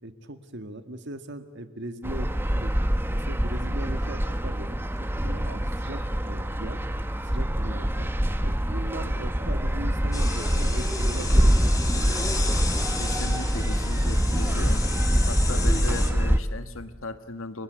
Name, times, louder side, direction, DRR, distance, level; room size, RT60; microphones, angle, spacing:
voice 1, 0.0-2.8 3.1-6.8 7.2-8.1 8.4-12.6, right 1 dB, 60° right, 8 dB, 1.9 m, -39 dB
sound 1, 2.0-16.4, equal, 10° right, 1.0 m, -25 dB
sound 2, 10.1-16.1, left 2 dB, 15° left, 2.5 m, -32 dB
voice 2, 13.0-14.8 15.3-17.6, left 2 dB, 80° left, 9 dB, 1.7 m, -37 dB
30.0 x 23.5 x 8.1 m, 1.3 s
head